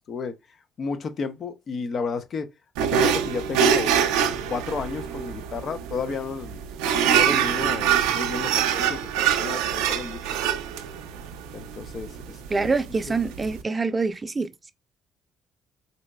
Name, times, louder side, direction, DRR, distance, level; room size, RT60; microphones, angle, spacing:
voice 1, 0.8-2.5 2.8-3.9 4.5-6.6 7.0-10.2 11.5-12.7 13.1-13.2, left 4 dB, 55° left, 0.7 m, -32 dB
sound 1, 2.8-13.6, right 8 dB, 85° right, 0.4 m, -25 dB
voice 2, 12.5-14.7, right 4 dB, 30° right, 0.5 m, -26 dB
4.2 x 2.7 x 2.2 m
supercardioid pair, 60°, 0 cm